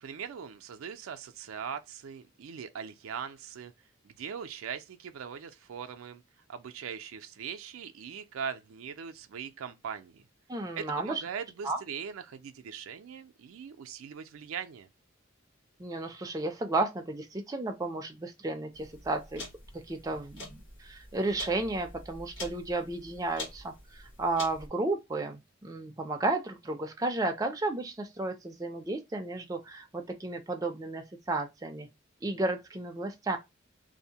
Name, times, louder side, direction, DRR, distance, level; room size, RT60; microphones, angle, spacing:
voice 1, 0.0-3.7 4.0-6.2 6.5-10.2 10.7-14.9, right 7 dB, 80° right, 0.4 m, -40 dB
voice 2, 10.5-11.2 11.6-11.8 15.8-19.4 19.7-31.9 32.2-33.4, right 2 dB, 15° right, 0.4 m, -33 dB
sound 1, 18.7-24.7, left 2 dB, 55° left, 1.2 m, -46 dB
2.6 x 2.0 x 2.7 m
head